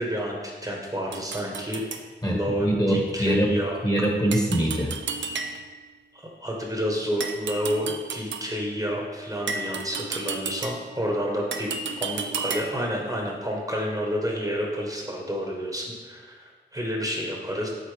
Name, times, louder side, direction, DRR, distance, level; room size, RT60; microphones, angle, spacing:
voice 1, 0.0-1.9 2.3-3.8 6.1-11.7 12.0-17.7, equal, 20° right, -1 dB, 1.1 m, -29 dB
sound 1, 1.1-2.1 4.3-5.8 7.2-8.6 9.5-11.0 11.5-12.9, right 5 dB, 90° right, 0.5 m, -33 dB
voice 2, 2.2-3.5 3.8-4.9, right 1 dB, 20° left, -1 dB, 1.5 m, -23 dB
8.2 x 4.2 x 3.3 m, 1.4 s
cardioid pair, 45°, 19 cm